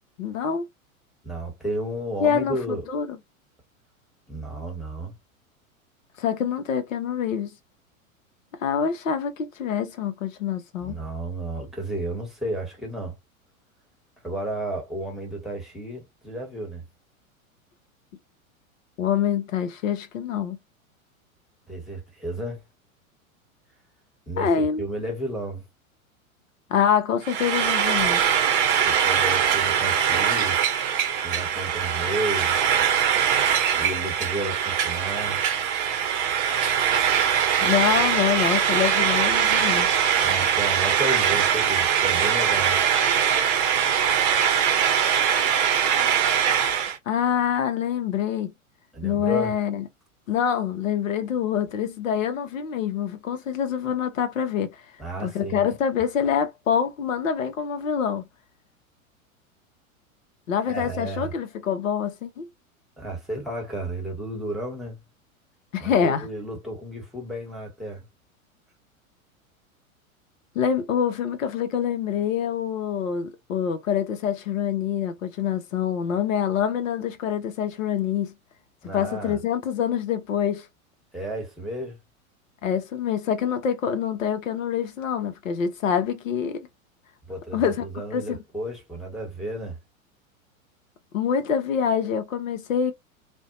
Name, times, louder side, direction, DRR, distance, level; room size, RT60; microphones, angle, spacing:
voice 1, 0.2-0.7 2.2-3.2 6.2-7.5 8.6-11.0 19.0-20.6 24.4-24.8 26.7-28.2 37.6-39.9 44.8-45.0 47.1-48.5 49.0-49.8 50.3-54.8 55.2-58.2 60.5-62.5 65.7-66.3 70.5-78.3 78.9-80.7 82.6-86.7 87.5-87.8 88.1-88.4 91.1-92.9, left 8 dB, 65° left, 0.7 m, -25 dB
voice 2, 1.2-2.9 4.3-5.1 10.8-13.1 14.2-16.8 21.7-22.6 24.3-25.6 28.8-30.6 31.2-32.6 33.8-35.4 40.2-42.8 48.9-49.5 55.0-55.7 60.7-61.3 63.0-65.0 65.8-68.0 78.8-79.4 81.1-82.0 87.3-89.8, right 1 dB, ahead, 1.1 m, -32 dB
Frying (food), 27.2-47.0, right 8 dB, 40° right, 0.7 m, -22 dB
2.5 x 2.1 x 2.4 m
figure-of-eight pair, 95°, 42 cm